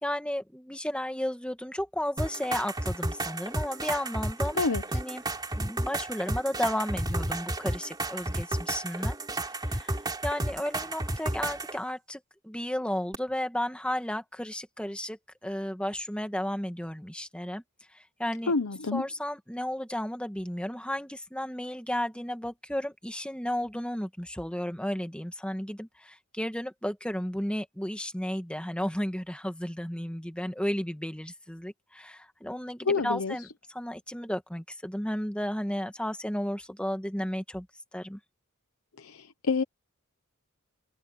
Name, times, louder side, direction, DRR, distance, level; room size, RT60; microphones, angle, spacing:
voice 1, 0.0-4.6 4.9-5.2 5.6-9.2 9.6-17.6 17.9-18.5 18.9-37.7 37.9-38.2, equal, 5° left, 1.9 m, -33 dB
sound 1, 2.2-11.8 13.1-13.2, right 1 dB, 20° right, 3.2 m, -32 dB
voice 2, 18.5-19.1 32.8-33.4 39.0-39.6, left 4 dB, 85° left, 1.0 m, -27 dB
open air
head